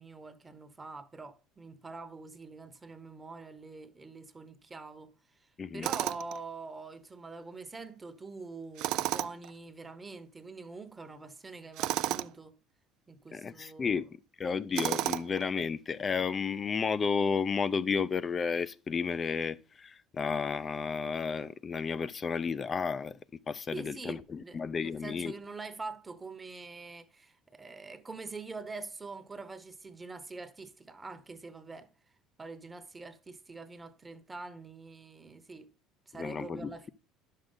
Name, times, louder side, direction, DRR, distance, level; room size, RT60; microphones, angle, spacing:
voice 1, 0.0-5.1 5.4-12.5 13.1-14.0 23.7-31.9 32.4-35.7 36.1-36.9, right 3 dB, 20° right, 1.0 m, -45 dB
Tools, 5.8-6.4 8.8-9.5 11.8-12.3 14.7-15.4, right 15 dB, 65° right, 0.4 m, -32 dB
voice 2, 13.3-14.1 14.4-25.3 36.2-36.9, left 5 dB, 35° left, 0.5 m, -32 dB
10.5 x 6.6 x 3.9 m
supercardioid pair, 80°, 0 cm